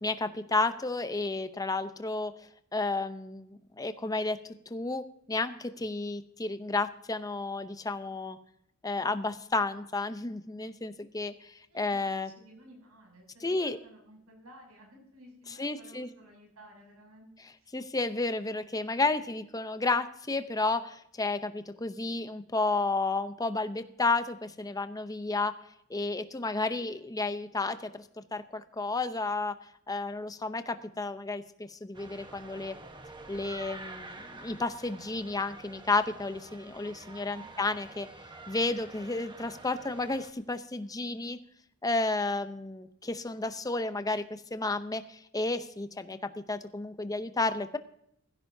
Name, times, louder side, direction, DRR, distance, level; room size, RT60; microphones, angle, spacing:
voice 1, 0.0-4.4 4.7-8.4 8.8-12.3 13.4-13.8 15.6-16.1 17.7-25.5 25.9-29.5 29.9-32.8 33.3-38.1 38.5-41.4 41.8-47.8, left 3 dB, 15° left, 10 dB, 0.7 m, -32 dB
voice 2, 12.2-17.3 17.6-17.7 37.3-37.6, right 1 dB, 85° right, 1 dB, 7.0 m, -54 dB
sound 1, 31.9-40.3, right 2 dB, 20° right, 1.2 m, -48 dB
17.5 x 15.0 x 2.7 m, 0.73 s
head